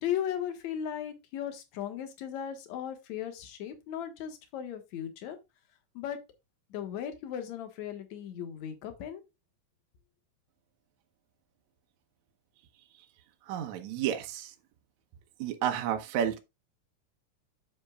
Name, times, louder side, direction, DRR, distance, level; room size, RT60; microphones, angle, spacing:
voice 1, 0.0-5.4 5.9-6.2 6.7-9.2, left 9 dB, 65° left, 2.5 m, -36 dB
voice 2, 13.4-14.5 15.4-16.4, right 9 dB, 70° right, 2.1 m, -31 dB
8.2 x 7.4 x 2.3 m
omnidirectional pair, 3.7 m